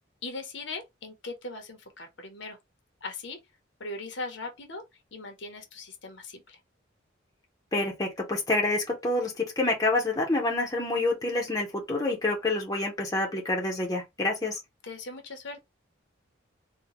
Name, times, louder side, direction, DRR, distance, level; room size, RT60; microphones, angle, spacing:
voice 1, 0.2-2.6 3.0-3.4 3.8-4.8 5.1-6.6 14.8-15.6, left 3 dB, 65° left, 1.0 m, -39 dB
voice 2, 7.7-14.6, left 2 dB, 20° left, 0.9 m, -27 dB
3.7 x 2.4 x 3.0 m
head